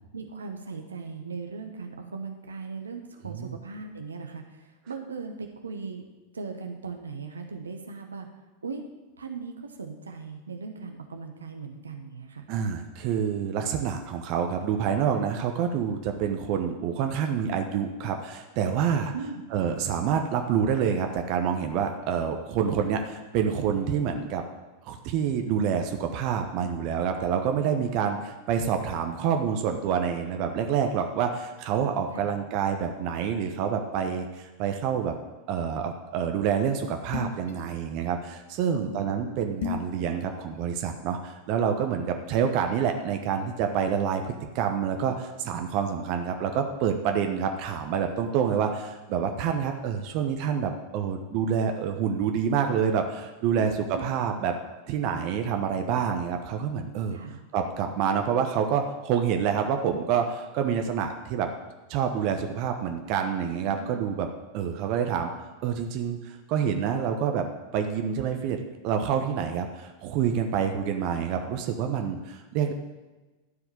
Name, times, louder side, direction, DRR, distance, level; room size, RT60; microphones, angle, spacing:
voice 1, 0.1-6.0 6.3-8.3 8.6-8.8 9.2-12.4 19.1-19.4 32.1-32.3 38.7-39.1 53.5-54.1 57.1-57.4 63.7-64.1, right 4 dB, 75° right, 4 dB, 1.2 m, -38 dB
voice 2, 3.2-3.6 12.5-19.1 19.5-24.4 24.8-35.1 35.5-54.5 54.9-57.2 57.5-61.5 61.9-64.3 64.5-65.3 65.6-67.4 67.7-72.7, right 7 dB, 45° right, 5 dB, 1.1 m, -27 dB
sound 1, 37.1-37.5 39.6-39.9, left 8 dB, 60° left, 1.3 m, -32 dB
12.5 x 4.9 x 8.0 m, 1.2 s
figure-of-eight pair, 90°, 0 cm